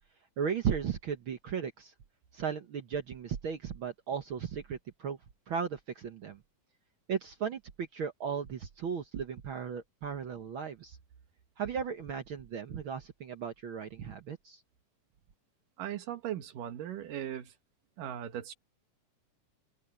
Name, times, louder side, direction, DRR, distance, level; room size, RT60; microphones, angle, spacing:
voice 1, 0.4-1.9 2.3-5.2 5.5-6.4 7.1-11.0 11.6-14.6, right 7 dB, 60° right, 1.3 m, -36 dB
voice 2, 15.8-17.5 18.0-18.5, right 11 dB, 90° right, 3.2 m, -38 dB
open air
omnidirectional pair, 3.7 m